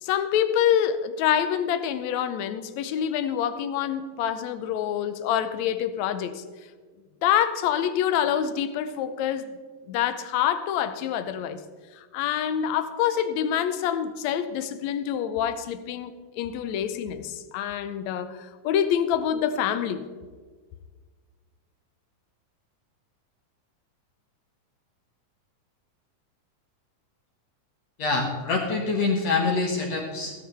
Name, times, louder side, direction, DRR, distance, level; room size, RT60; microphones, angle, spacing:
voice 1, 0.0-6.4 7.2-9.5 9.9-11.6 12.0-20.1, left 9 dB, 75° left, 1.8 m, -26 dB
voice 2, 28.0-30.3, left 3 dB, 55° left, 2.4 m, -25 dB
15.5 x 13.5 x 3.4 m
omnidirectional pair, 3.8 m